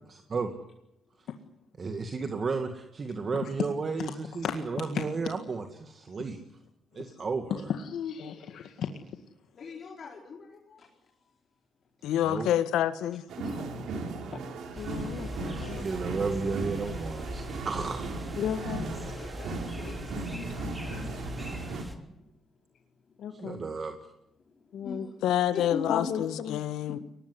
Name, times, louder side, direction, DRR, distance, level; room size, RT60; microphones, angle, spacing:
voice 1, 0.1-0.5 1.8-6.4 6.9-7.7 12.2-12.5 15.6-18.1 23.4-24.0, right 4 dB, 40° right, 6 dB, 2.2 m, -33 dB
voice 2, 4.4-5.1 7.7-8.9 14.8-15.6 18.4-18.9 23.2-23.6 24.7-25.1 25.9-26.6, left 8 dB, 70° left, 6 dB, 1.9 m, -34 dB
voice 3, 9.5-10.9 13.4-13.6 14.3-14.7 18.9-21.9 23.3-23.6 24.8-25.2 25.5-26.1, left 5 dB, 55° left, -2 dB, 4.7 m, -42 dB
voice 4, 12.0-13.2 15.6-15.9 25.2-27.0, left 11 dB, 90° left, 13 dB, 1.4 m, -28 dB
sound 1, 13.3-21.8, right 3 dB, 75° right, 4.5 m, -37 dB
sound 2, 14.8-21.9, equal, 5° right, 3.4 m, -41 dB
23.0 x 19.5 x 9.8 m, 0.83 s
cardioid pair, 90°, 0 cm